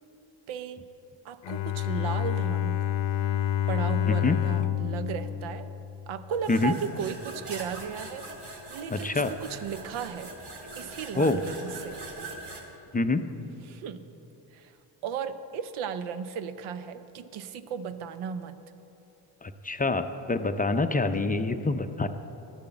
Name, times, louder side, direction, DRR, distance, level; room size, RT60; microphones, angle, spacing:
voice 1, 0.5-0.9 1.2-2.9 3.7-5.7 6.1-8.2 8.7-10.3 10.8-12.0 13.7-14.1 14.5-14.8 15.0-18.6, right 7 dB, 80° right, 12 dB, 0.7 m, -35 dB
Bowed string instrument, 1.4-6.4, left 11 dB, 65° left, 0.7 m, -28 dB
voice 2, 4.1-4.4 6.5-6.8 8.9-9.3 11.2-11.4 12.9-13.3 19.4-22.1, left 3 dB, 20° left, 8 dB, 0.5 m, -26 dB
sound 1, 6.3-12.6, right 2 dB, 55° right, 2.3 m, -42 dB
12.0 x 6.8 x 7.8 m, 3.0 s
supercardioid pair, 65°, 48 cm